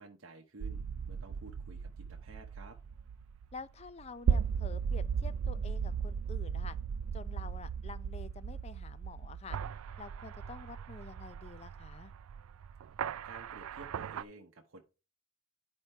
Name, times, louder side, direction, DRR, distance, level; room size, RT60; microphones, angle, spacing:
voice 1, 0.0-2.8 13.2-14.8, right 3 dB, 70° right, 0.8 m, -52 dB
sound 1, 0.6-14.2, right 6 dB, 85° right, 0.4 m, -37 dB
voice 2, 3.5-6.8 7.1-9.6 10.0-12.1, left 4 dB, 30° left, 0.4 m, -48 dB
9.7 x 4.3 x 4.4 m
head